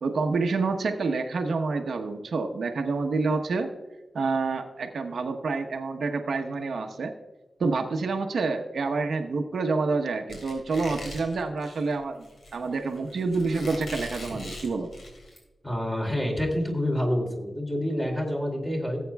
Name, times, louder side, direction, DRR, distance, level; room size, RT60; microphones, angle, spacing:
voice 1, 0.0-3.7 4.1-7.1 7.6-12.3 12.5-14.9, right 4 dB, 90° right, 4 dB, 1.0 m, -28 dB
Squeak, 10.3-15.4, left 1 dB, 75° left, 3.8 m, -42 dB
voice 2, 15.6-19.0, equal, 10° left, 0 dB, 2.8 m, -27 dB
18.0 x 8.4 x 2.3 m, 1.1 s
wide cardioid pair, 135°, 0 cm